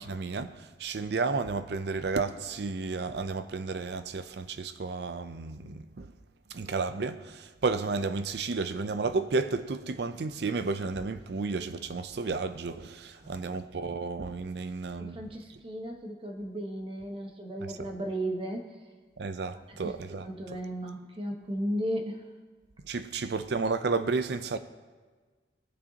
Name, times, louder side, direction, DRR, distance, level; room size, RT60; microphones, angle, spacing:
voice 1, 0.0-6.1 6.5-15.2 17.6-17.9 19.2-20.3 22.8-24.6, right 4 dB, 65° right, 0.5 m, -32 dB
voice 2, 13.2-13.6 15.0-18.7 19.8-19.9 20.2-22.2, equal, 30° right, 1.1 m, -35 dB
20.0 x 6.8 x 2.8 m
head